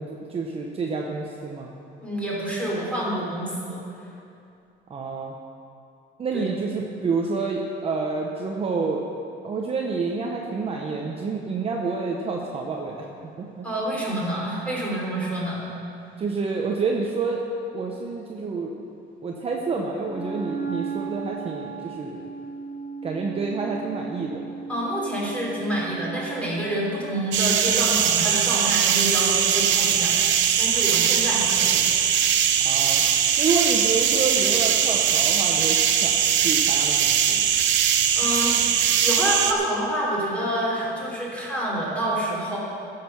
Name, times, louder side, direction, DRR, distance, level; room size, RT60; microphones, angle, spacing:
voice 1, 0.0-1.7 4.9-5.3 6.2-9.0 9.4-13.7 16.2-17.5 17.7-18.7 19.2-22.3 23.0-24.4 32.6-33.0 33.4-37.4, right 4 dB, 30° right, -1 dB, 0.9 m, -28 dB
voice 2, 2.0-3.8 6.3-6.5 13.6-15.7 24.7-31.8 38.1-42.6, right 1 dB, 5° left, -5 dB, 3.3 m, -28 dB
Wind instrument woodwind instrument, 20.1-26.7, right 5 dB, 10° right, 1.9 m, -35 dB
sound 1, 27.3-39.5, right 9 dB, 70° right, 0.9 m, -21 dB
15.0 x 6.8 x 6.0 m, 2.6 s
cardioid pair, 145°, 20 cm